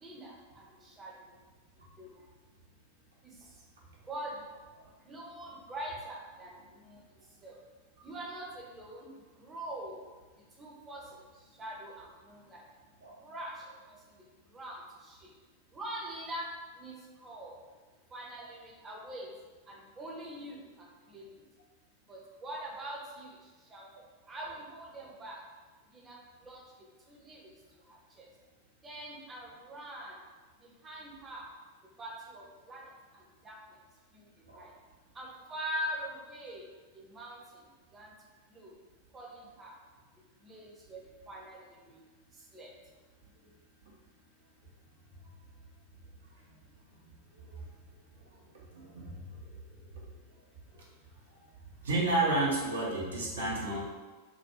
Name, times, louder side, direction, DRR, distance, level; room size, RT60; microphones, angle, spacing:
voice 1, 0.0-0.3 1.0-1.1 2.0-2.1 4.1-4.3 5.1-6.5 6.9-7.0 7.4-7.5 8.0-9.0 9.4-9.9 10.6-11.0 11.6-12.6 13.2-13.5 14.5-14.8 15.1-15.2 15.7-16.5 16.8-16.9 17.2-17.5 18.1-19.3 19.7-20.5 21.1-21.3 22.1-23.3 23.7-23.9 24.3-25.4 25.9-26.2 26.5-26.6 27.1-27.4 28.8-30.1 30.8-31.5 32.0-32.8 33.4-33.6 34.6-34.7 35.2-36.6 37.1-37.4 37.9-38.1 38.5-38.7 39.1-39.3 39.6-39.7 40.4-41.0 41.3-41.6 42.5-42.7, right 1 dB, 20° right, -2 dB, 0.6 m, -42 dB
voice 2, 48.7-49.4 51.4-51.5 51.8-53.8, right 2 dB, 65° right, -4 dB, 0.6 m, -31 dB
2.3 x 2.2 x 2.8 m, 1.3 s
figure-of-eight pair, 90°, 0 cm